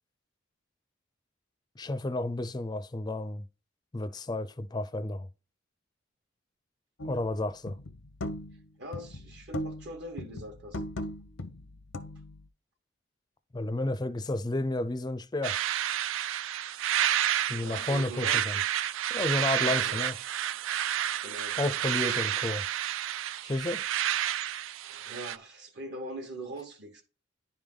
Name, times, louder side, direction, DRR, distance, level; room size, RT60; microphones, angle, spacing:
voice 1, 1.8-3.5 3.9-5.3 7.0-7.8 13.5-15.6 17.5-18.6 19.1-20.2 21.6-22.6 23.4-23.8, left 2 dB, 20° left, 0.4 m, -31 dB
sound 1, 7.0-7.3 7.7-8.6 8.9-9.9 10.2-12.4, left 1 dB, 85° left, 0.7 m, -38 dB
voice 2, 8.8-10.8 17.5-18.6 19.5-20.1 21.2-22.4 24.8-27.0, right 1 dB, 60° right, 1.2 m, -42 dB
sound 2, 15.4-25.4, right 11 dB, 75° right, 0.3 m, -30 dB
10.5 x 3.5 x 3.7 m
head